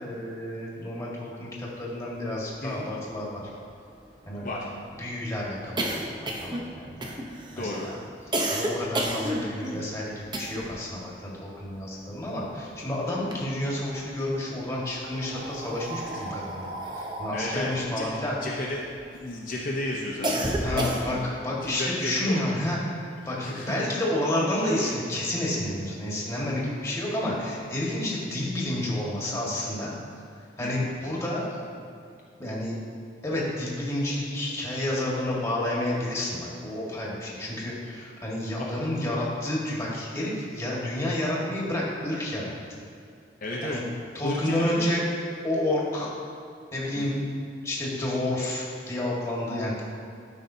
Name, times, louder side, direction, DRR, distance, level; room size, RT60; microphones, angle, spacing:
voice 1, 0.0-3.4 4.2-4.5 5.0-7.2 7.5-8.0 8.5-18.3 20.6-29.9 30.6-31.8 32.3-32.7 33.2-42.5 43.6-43.8 44.1-45.0 45.4-46.1 46.7-47.2 47.6-49.8, left 1 dB, 15° left, -5 dB, 1.7 m, -30 dB
sound 1, 2.6-2.7 3.0-3.1 3.4-10.9 11.1-12.7 13.1-14.0 14.7-19.2 19.6-21.4, right 1 dB, 25° right, 0.8 m, -32 dB
voice 2, 7.5-7.9 16.1-16.2 17.3-18.1 18.4-18.8 19.1-21.0 21.6-22.4 23.4-23.7 30.6-30.9 38.6-38.7 43.4-43.8 44.2-44.9 46.9-47.2, left 1 dB, 50° left, -4 dB, 0.8 m, -33 dB
12.5 x 5.5 x 2.8 m, 2.4 s
head